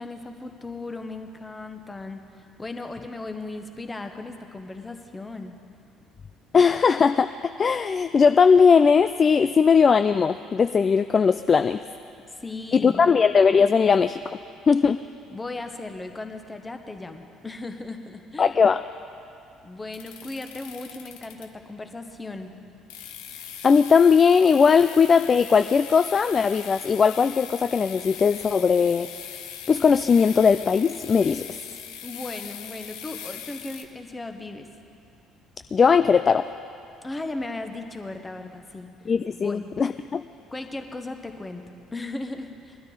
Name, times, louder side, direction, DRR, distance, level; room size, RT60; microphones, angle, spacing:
voice 1, 0.0-2.2 2.6-5.5 12.3-13.1 15.3-18.5 19.6-22.5 32.0-34.7 37.0-38.9 39.4-39.7 40.5-41.7 41.9-42.8, left 2 dB, 20° left, 6 dB, 1.3 m, -36 dB
voice 2, 6.5-11.8 12.7-14.2 14.7-15.0 18.4-18.8 23.6-29.1 29.7-31.5 35.7-36.5 39.1-40.2, left 6 dB, 35° left, 10 dB, 0.3 m, -19 dB
sound 1, 19.9-21.7 22.9-33.8, left 9 dB, 65° left, 0.8 m, -40 dB
20.5 x 12.5 x 4.0 m, 2.6 s
figure-of-eight pair, 50°, 0 cm